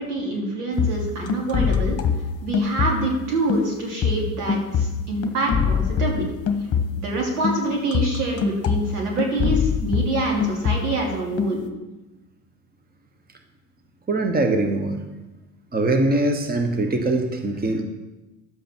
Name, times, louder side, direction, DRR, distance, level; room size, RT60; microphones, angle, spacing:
voice 1, 0.0-2.0 2.4-6.3 7.0-11.6, right 2 dB, 80° right, -1 dB, 3.1 m, -26 dB
sound 1, 0.7-3.2 3.5-7.2 7.4-11.1 11.4-11.7, left 6 dB, 30° left, 1.2 m, -24 dB
voice 2, 14.1-15.0 15.7-17.8, right 2 dB, 20° right, 5 dB, 1.3 m, -22 dB
11.0 x 7.7 x 4.5 m, 1.1 s
hypercardioid pair, 80°, 46 cm